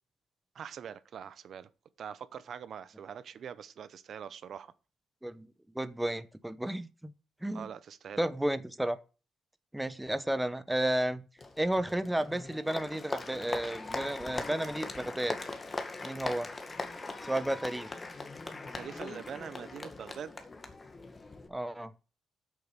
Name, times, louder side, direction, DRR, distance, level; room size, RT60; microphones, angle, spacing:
voice 1, 0.5-1.7 2.0-4.7 7.5-8.3 18.7-20.4, right 8 dB, 60° right, 0.8 m, -43 dB
voice 2, 5.7-7.1 7.4-7.7 8.2-9.0 9.7-11.2 11.6-15.4 16.0-16.5 17.2-17.9 21.5-21.9, right 1 dB, 5° right, 0.9 m, -32 dB
Applause, 11.4-21.5, left 3 dB, 25° left, 1.9 m, -40 dB
8.3 x 6.6 x 8.1 m
cardioid pair, 90°, 0 cm